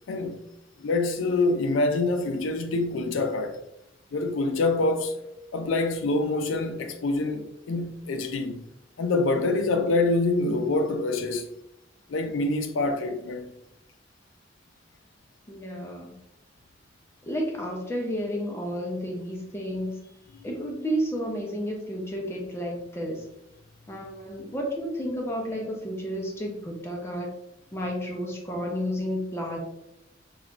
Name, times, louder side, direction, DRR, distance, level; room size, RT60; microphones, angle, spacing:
voice 1, 0.1-0.4 0.8-3.6 4.1-5.2 5.5-8.7 9.0-11.5 12.1-13.6, left 2 dB, 85° left, 0.4 m, -26 dB
voice 2, 15.5-16.1 17.2-20.0 20.4-23.2 23.9-27.3 27.7-29.6, equal, 15° left, 0.4 m, -31 dB
3.1 x 2.2 x 2.4 m
head